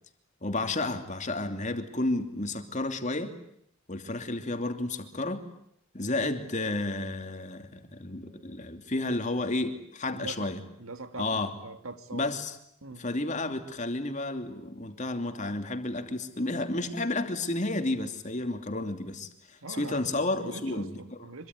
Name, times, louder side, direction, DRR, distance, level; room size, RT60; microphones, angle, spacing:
voice 1, 0.4-3.3 3.9-5.4 5.9-10.6 11.2-11.5 12.1-12.5 13.0-21.2, left 2 dB, 35° left, 7 dB, 2.8 m, -31 dB
voice 2, 10.1-10.5 10.8-12.3 12.8-13.0 19.6-21.5, right 3 dB, 75° right, 10 dB, 2.3 m, -42 dB
25.5 x 24.0 x 9.8 m, 0.73 s
head